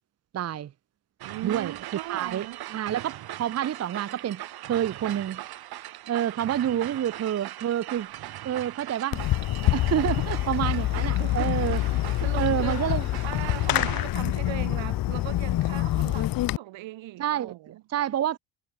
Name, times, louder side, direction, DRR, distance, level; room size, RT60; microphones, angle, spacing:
voice 1, 0.3-0.7 1.4-1.7 2.1-5.4 6.1-8.1 8.4-9.2 9.7-11.8 12.4-13.0 13.7-13.9 17.2-18.4, right 10 dB, 35° right, 1.0 m, -28 dB
sound 1, 1.2-14.0, right 14 dB, 55° right, 1.8 m, -40 dB
voice 2, 1.2-2.6 6.8-7.0 10.0-10.4 11.2-11.5 12.2-12.8 13.2-17.8, right 17 dB, 85° right, 4.4 m, -38 dB
Fireworks, 9.1-16.6, left 15 dB, 50° left, 0.9 m, -26 dB
cardioid pair, 175°, 44 cm